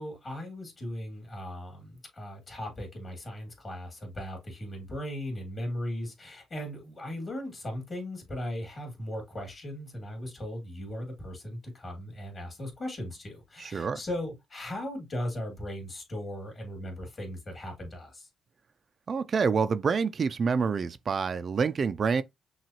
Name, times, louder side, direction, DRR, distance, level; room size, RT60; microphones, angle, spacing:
voice 1, 0.0-18.3, left 1 dB, 35° left, 2.4 m, -38 dB
voice 2, 13.6-14.0 19.1-22.2, right 5 dB, 45° right, 0.3 m, -27 dB
5.9 x 2.3 x 2.9 m
cardioid pair, 90°, 0 cm